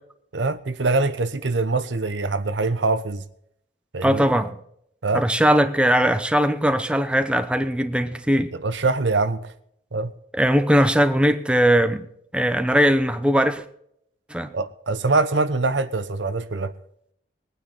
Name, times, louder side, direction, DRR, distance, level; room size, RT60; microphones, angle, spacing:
voice 1, 0.3-3.2 3.9-4.4 5.0-5.3 8.5-9.5 9.9-10.1 14.5-16.7, right 3 dB, 85° right, 0.9 m, -24 dB
voice 2, 4.0-4.6 5.1-8.5 10.3-12.1 12.3-13.6 14.3-14.5, equal, 5° right, 0.8 m, -20 dB
20.5 x 9.2 x 4.2 m
head